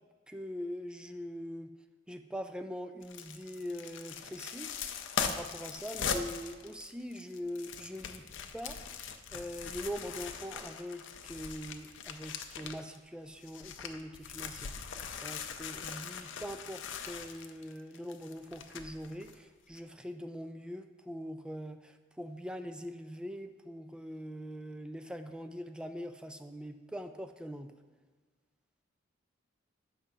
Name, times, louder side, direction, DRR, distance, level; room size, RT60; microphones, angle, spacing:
voice 1, 0.0-1.7 2.1-4.8 5.3-8.2 8.5-8.8 9.3-14.7 15.2-27.7, equal, 5° right, 7 dB, 0.3 m, -42 dB
sound 1, 3.0-13.0 13.3-19.4 19.7-19.8, left 6 dB, 70° left, 0.5 m, -40 dB
7.0 x 3.7 x 5.5 m, 1.5 s
head